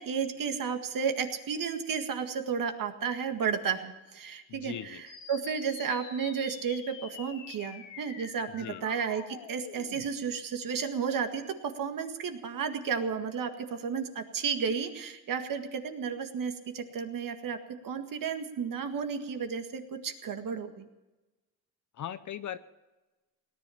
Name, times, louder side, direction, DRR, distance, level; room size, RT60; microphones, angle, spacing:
voice 1, 0.0-17.6 17.8-20.9, right 6 dB, 45° right, 6 dB, 1.9 m, -33 dB
voice 2, 4.5-5.0 8.5-8.8 22.0-22.6, left 10 dB, 40° left, 13 dB, 0.7 m, -39 dB
sound 1, 5.1-10.1, left 8 dB, 70° left, 2.0 m, -47 dB
18.0 x 10.5 x 7.1 m, 1.1 s
cardioid pair, 110°, 45 cm